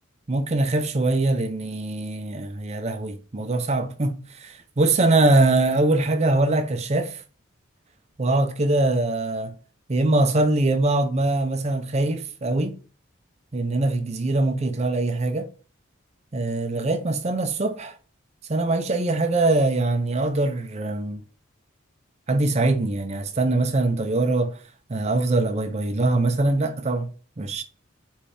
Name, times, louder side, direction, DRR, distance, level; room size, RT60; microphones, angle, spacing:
voice 1, 0.3-7.2 8.2-9.5 9.9-12.8 13.5-15.5 16.3-18.0 18.5-21.2 22.3-24.6 24.9-27.6, right 2 dB, 30° right, 0.5 m, -23 dB
4.4 x 3.3 x 3.3 m
head